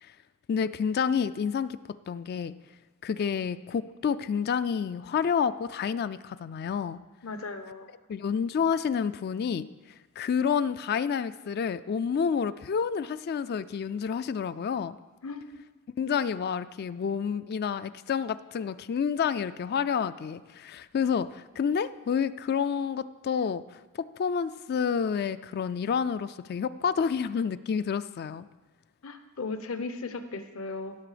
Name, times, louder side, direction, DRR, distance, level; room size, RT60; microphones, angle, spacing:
voice 1, 0.5-1.8 2.1-2.5 3.0-7.0 8.1-9.7 10.2-15.0 16.0-23.6 24.0-28.5, left 6 dB, 45° left, 14 dB, 0.3 m, -29 dB
voice 2, 7.2-7.9 15.2-15.6 29.0-31.0, left 3 dB, 65° left, 9 dB, 0.9 m, -36 dB
16.5 x 6.7 x 5.0 m, 1.2 s
head